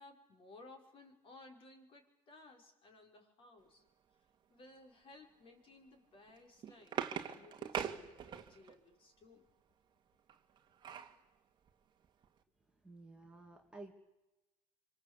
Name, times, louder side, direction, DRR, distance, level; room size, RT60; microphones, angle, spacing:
voice 1, 0.0-3.8 4.5-9.5, left 2 dB, 30° left, 4 dB, 5.9 m, -59 dB
sound 1, 6.3-8.8 10.3-11.2 11.7-11.8 12.0-12.3, right 8 dB, 25° right, 2.1 m, -42 dB
voice 2, 12.8-13.9, right 2 dB, 5° right, 0 dB, 2.4 m, -53 dB
25.5 x 25.5 x 8.5 m, 1.0 s
supercardioid pair, 135°, 17 cm